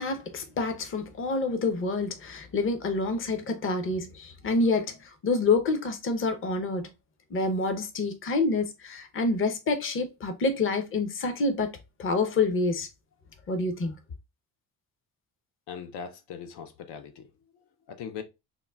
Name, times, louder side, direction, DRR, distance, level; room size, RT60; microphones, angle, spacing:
voice 1, 0.0-5.0 5.2-6.9 7.3-11.7 12.0-12.9 13.5-13.9, left 3 dB, 35° left, 0.6 m, -27 dB
voice 2, 15.7-17.3 17.9-18.2, left 7 dB, 85° left, 0.6 m, -40 dB
3.7 x 2.1 x 2.2 m
cardioid pair, 105°, 39 cm